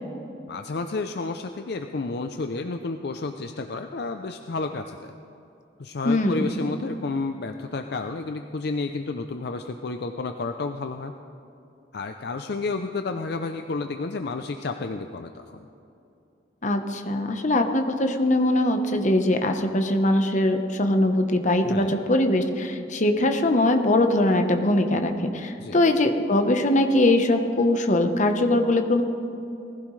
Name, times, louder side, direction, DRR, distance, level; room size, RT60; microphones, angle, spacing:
voice 1, 0.5-5.1 5.8-11.1 11.9-15.7 21.6-22.0 25.6-25.8, left 3 dB, 60° left, 6 dB, 0.5 m, -31 dB
voice 2, 6.0-6.5 16.6-29.0, left 1 dB, 45° left, 5 dB, 1.0 m, -22 dB
19.5 x 15.5 x 3.2 m, 2.8 s
head